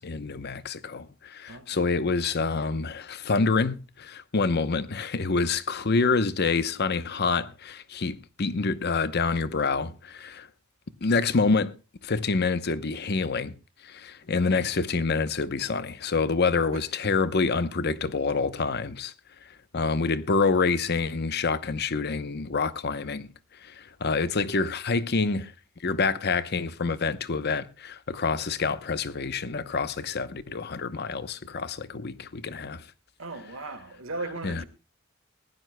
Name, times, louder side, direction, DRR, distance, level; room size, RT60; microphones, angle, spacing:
voice 1, 0.0-10.5 11.0-11.7 12.0-13.5 13.8-19.1 19.4-25.5 25.8-32.9 34.4-34.6, left 4 dB, 55° left, 0.8 m, -27 dB
voice 2, 1.5-1.8 16.7-16.8 33.2-34.7, right 3 dB, 80° right, 1.6 m, -37 dB
20.5 x 15.5 x 2.2 m
head